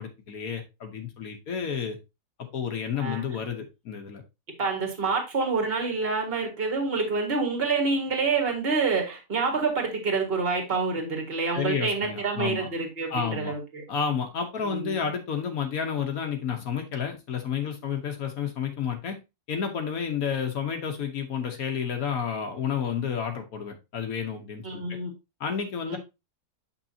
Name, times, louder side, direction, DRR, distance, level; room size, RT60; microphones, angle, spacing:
voice 1, 0.0-2.0 2.4-4.2 11.5-12.7 13.1-13.5 13.9-19.2 19.5-24.8 25.4-26.0, left 7 dB, 65° left, 4 dB, 1.3 m, -31 dB
voice 2, 4.6-13.8 14.6-15.0 24.6-25.1 25.9-26.0, right 4 dB, 40° right, 3 dB, 2.0 m, -27 dB
7.9 x 5.6 x 2.7 m, 0.25 s
omnidirectional pair, 1.7 m